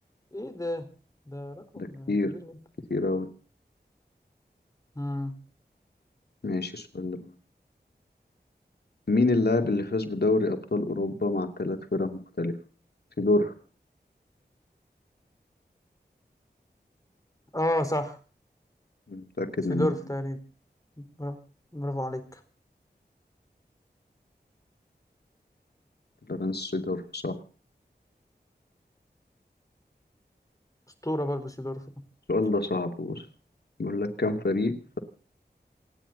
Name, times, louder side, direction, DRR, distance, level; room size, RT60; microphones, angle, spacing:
voice 1, 0.3-0.9 1.3-2.6 5.0-5.4 17.5-18.2 19.7-20.4 21.0-21.4 21.7-22.4 31.0-31.8, left 1 dB, 20° left, 7 dB, 4.5 m, -31 dB
voice 2, 1.8-2.3 2.9-3.3 6.4-7.3 9.1-12.5 13.2-13.5 19.1-19.9 26.3-27.3 32.3-33.2 33.8-35.0, left 2 dB, 70° left, 5 dB, 2.7 m, -27 dB
28.0 x 10.5 x 4.1 m, 0.39 s
wide cardioid pair, 40°, 17 cm